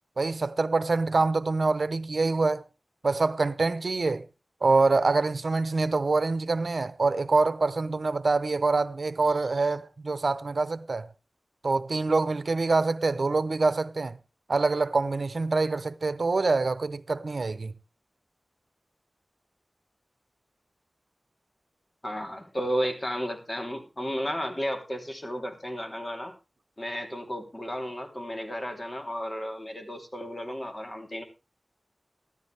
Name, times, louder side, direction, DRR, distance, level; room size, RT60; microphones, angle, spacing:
voice 1, 0.2-2.6 3.0-4.2 4.6-11.1 11.6-14.2 14.5-17.7, right 3 dB, 80° right, 0.7 m, -25 dB
voice 2, 22.0-26.3 26.8-31.2, equal, 35° left, 3.1 m, -33 dB
14.5 x 13.5 x 3.4 m
wide cardioid pair, 45°, 0 cm